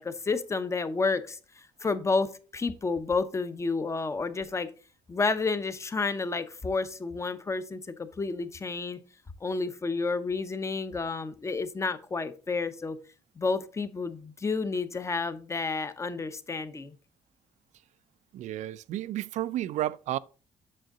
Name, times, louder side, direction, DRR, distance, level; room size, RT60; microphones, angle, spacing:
voice 1, 0.0-4.7 5.1-9.0 9.4-13.0 13.4-16.9, left 4 dB, 25° left, 0.8 m, -30 dB
voice 2, 18.3-20.2, right 13 dB, 75° right, 0.4 m, -32 dB
7.7 x 6.3 x 3.8 m
cardioid pair, 105°, 12 cm